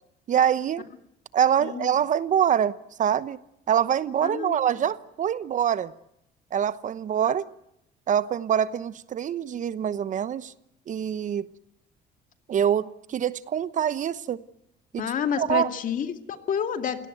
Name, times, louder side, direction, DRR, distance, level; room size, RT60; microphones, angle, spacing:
voice 1, 0.3-0.8 1.3-3.4 3.7-5.9 6.5-7.5 8.1-10.5 10.9-11.5 12.5-14.4 14.9-15.0 15.4-15.7, right 9 dB, 50° right, 1.0 m, -25 dB
voice 2, 4.2-4.6 15.0-17.1, left 8 dB, 50° left, 2.4 m, -29 dB
28.5 x 17.5 x 9.2 m
cardioid pair, 110°, 17 cm